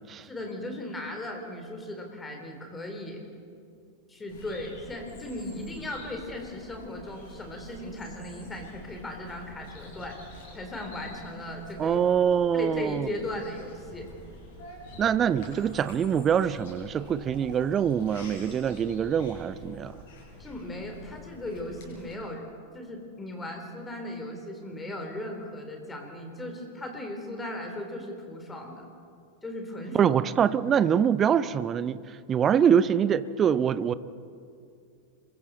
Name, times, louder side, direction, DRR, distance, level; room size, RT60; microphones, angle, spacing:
voice 1, 0.2-3.2 4.1-10.2 10.5-12.0 12.5-14.1 20.4-22.5 22.7-28.9 29.4-30.1, left 1 dB, 15° left, 3 dB, 3.7 m, -37 dB
Bird vocalization bird call bird song, 4.3-22.1, left 1 dB, 50° left, 6.8 m, -47 dB
voice 2, 11.8-13.1 15.0-19.9 29.9-32.0 32.3-33.9, right 8 dB, 25° right, 16 dB, 0.7 m, -24 dB
26.5 x 23.0 x 4.2 m, 2.4 s
figure-of-eight pair, 90°, 0 cm